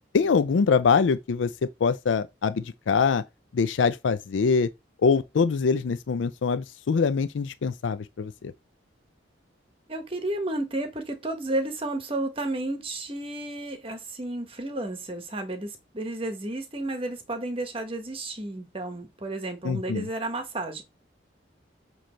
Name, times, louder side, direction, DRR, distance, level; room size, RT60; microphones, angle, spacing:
voice 1, 0.1-3.2 3.5-4.7 5.0-8.5 19.6-20.1, left 5 dB, 80° left, 0.4 m, -24 dB
voice 2, 9.9-20.8, right 2 dB, 30° right, 1.3 m, -32 dB
7.6 x 3.2 x 4.4 m
head